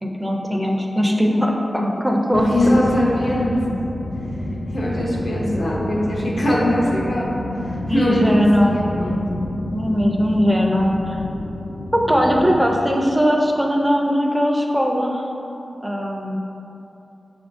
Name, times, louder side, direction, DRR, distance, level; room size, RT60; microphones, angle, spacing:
voice 1, 0.0-2.8 7.9-8.8 9.7-11.2 11.9-15.2 15.8-16.4, equal, 10° right, 0 dB, 0.6 m, -19 dB
voice 2, 2.3-3.8 4.7-7.3 7.5-9.2, left 1 dB, 75° left, -5 dB, 0.8 m, -22 dB
sound 1, 2.3-12.6, left 1 dB, 55° left, 0.4 m, -29 dB
5.6 x 3.6 x 2.5 m, 2.9 s
cardioid pair, 50°, 0 cm